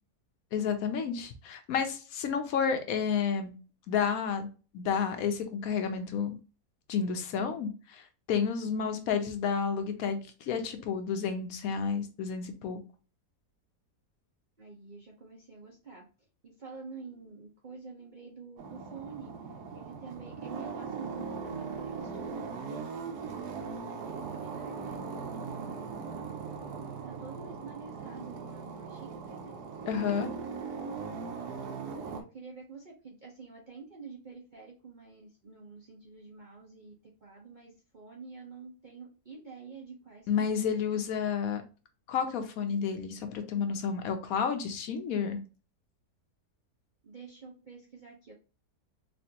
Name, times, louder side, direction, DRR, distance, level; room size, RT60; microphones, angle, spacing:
voice 1, 0.5-3.5 3.9-4.5 4.7-6.4 6.9-12.8 29.9-30.3 40.3-41.6 42.1-45.4, left 6 dB, 70° left, 7 dB, 1.0 m, -31 dB
voice 2, 14.6-16.0 16.4-19.3 19.7-23.0 23.6-25.0 25.3-25.9 27.0-29.6 31.9-40.9 47.0-48.3, right 4 dB, 50° right, -2 dB, 0.6 m, -48 dB
sound 1, 18.6-32.2, right 5 dB, 80° right, 1.2 m, -39 dB
4.3 x 2.5 x 2.7 m, 0.35 s
omnidirectional pair, 1.7 m